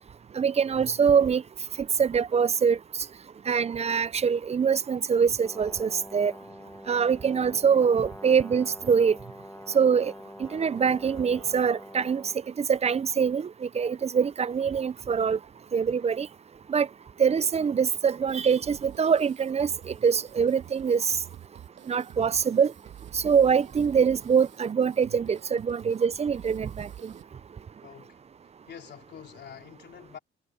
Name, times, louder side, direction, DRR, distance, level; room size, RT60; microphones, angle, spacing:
voice 1, 0.4-1.4 2.0-2.8 3.5-6.3 6.9-9.2 9.7-10.1 10.4-12.2 12.6-15.4 15.7-16.3 16.7-16.9 17.2-21.1 21.9-22.7 23.1-27.1, right 6 dB, 30° right, 0.5 m, -24 dB
Brass instrument, 5.4-12.4, left 1 dB, 10° left, 2.0 m, -45 dB
sound 1, 18.3-27.2, right 11 dB, 70° right, 7.5 m, -48 dB
voice 2, 27.8-30.2, left 8 dB, 60° left, 3.9 m, -47 dB
cardioid pair, 90°, 20 cm